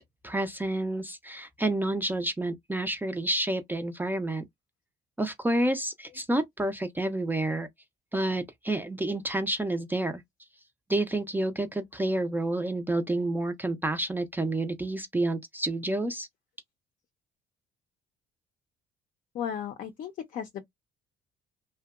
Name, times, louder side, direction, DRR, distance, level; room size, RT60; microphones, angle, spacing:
voice 1, 0.2-4.4 5.2-7.7 8.1-10.2 10.9-16.3, right 1 dB, 10° right, 0.4 m, -29 dB
voice 2, 19.3-20.6, left 8 dB, 50° left, 0.5 m, -35 dB
2.7 x 2.1 x 2.3 m
cardioid pair, 110°, 17 cm